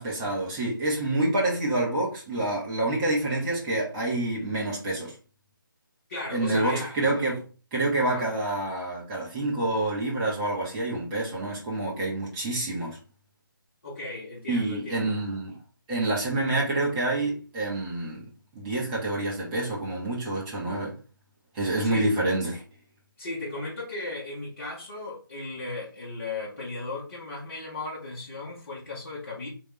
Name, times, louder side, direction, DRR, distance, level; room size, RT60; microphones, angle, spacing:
voice 1, 0.0-5.1 6.3-7.4 7.7-13.0 14.5-15.6 15.9-18.2 18.5-20.9 21.5-22.6, right 2 dB, 15° right, 1.3 m, -27 dB
voice 2, 6.1-6.9 8.0-8.3 13.8-15.1 21.8-22.2 23.2-29.5, left 2 dB, 40° left, 1.4 m, -36 dB
3.5 x 3.4 x 3.3 m
figure-of-eight pair, 155°, 12 cm